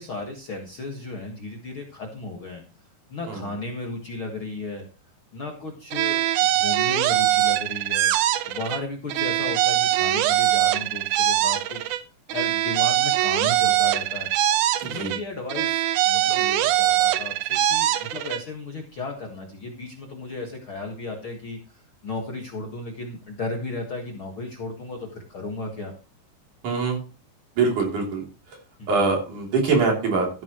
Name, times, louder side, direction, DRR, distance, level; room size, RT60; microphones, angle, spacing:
voice 1, 0.0-2.6 3.1-4.8 5.3-8.1 8.5-11.8 12.3-14.3 14.9-25.9 28.8-29.1, left 3 dB, 45° left, 0 dB, 1.9 m, -35 dB
sound 1, 5.9-8.8 9.1-12.0 12.3-15.2 15.5-18.4, right 12 dB, 80° right, 1.8 m, -22 dB
voice 2, 14.8-15.1 26.6-27.0 27.6-28.2 28.9-30.4, right 4 dB, 55° right, 0 dB, 4.5 m, -23 dB
14.0 x 9.9 x 3.0 m, 0.34 s
omnidirectional pair, 4.4 m